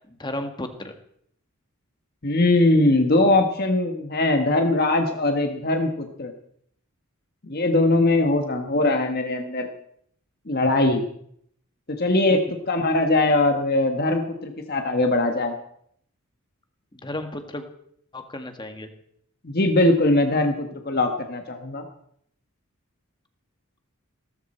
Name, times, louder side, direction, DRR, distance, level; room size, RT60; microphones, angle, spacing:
voice 1, 0.1-0.9 12.3-12.4 16.9-17.7 18.1-18.9, left 1 dB, 20° left, 6 dB, 1.6 m, -33 dB
voice 2, 2.2-6.3 7.4-9.7 10.5-11.0 11.9-12.4 12.7-15.5 19.4-21.8, left 2 dB, 45° left, 4 dB, 1.3 m, -21 dB
17.5 x 14.5 x 4.4 m, 0.68 s
head